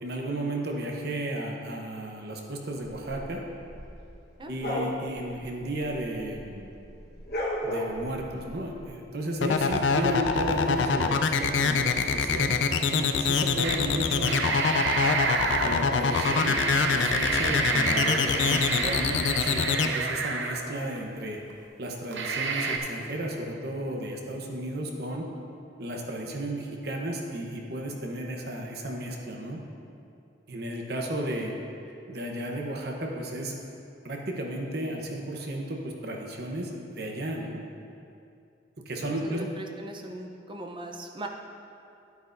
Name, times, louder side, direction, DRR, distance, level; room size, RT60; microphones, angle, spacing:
voice 1, 0.0-3.4 4.5-6.7 7.6-12.5 12.9-14.7 15.6-16.6 16.9-21.4 21.8-25.3 25.8-29.6 30.5-31.5 32.1-33.6 34.0-37.6 38.9-39.5, right 1 dB, 60° right, 0 dB, 1.0 m, -33 dB
sound 1, 2.8-6.5 6.8-8.8, left 1 dB, 55° left, 1.3 m, -35 dB
voice 2, 4.4-4.8 9.7-9.8 39.0-41.3, right 1 dB, 25° right, 3 dB, 0.6 m, -40 dB
sound 2, 9.4-19.9, left 5 dB, 90° left, 0.5 m, -24 dB
sound 3, 13.6-13.8 14.1-21.0 21.5-21.6 22.1-22.8, right 4 dB, 85° right, 0.7 m, -29 dB
10.5 x 9.5 x 2.6 m, 2.5 s
head